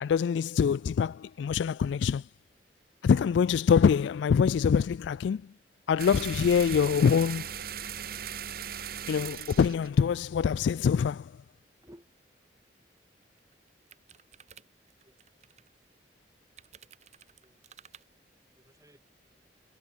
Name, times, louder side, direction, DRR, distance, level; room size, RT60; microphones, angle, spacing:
voice 1, 0.0-2.2 3.0-5.5 5.9-7.5 9.1-11.3, left 6 dB, 80° left, 0.3 m, -24 dB
sound 1, 6.0-10.9, right 8 dB, 55° right, 1.2 m, -39 dB
sound 2, 12.8-12.9 13.2-15.7 16.6-18.0, right 8 dB, 40° right, 1.4 m, -55 dB
voice 2, 15.0-15.4 15.9-16.1 17.4-18.0 18.6-19.0, equal, 20° right, 3.6 m, -58 dB
head